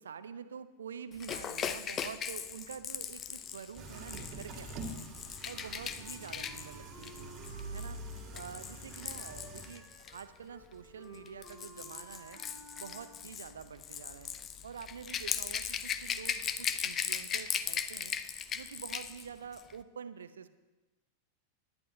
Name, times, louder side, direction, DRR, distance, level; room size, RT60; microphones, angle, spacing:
voice 1, 0.0-5.1 5.5-7.3 7.7-8.0 8.3-12.4 12.8-14.3 14.6-18.2 18.5-20.5, right 7 dB, 65° right, 12 dB, 0.6 m, -47 dB
Rattle / Rattle (instrument), 1.2-10.2 11.1-19.3 19.5-19.7, left 8 dB, 25° left, 0.6 m, -39 dB
sound 1, 3.8-9.7, right 2 dB, 30° right, 1.9 m, -45 dB
Wind instrument woodwind instrument, 6.0-13.5, equal, 5° left, 2.8 m, -55 dB
18.5 x 11.0 x 2.7 m, 1.2 s
figure-of-eight pair, 90°, 0 cm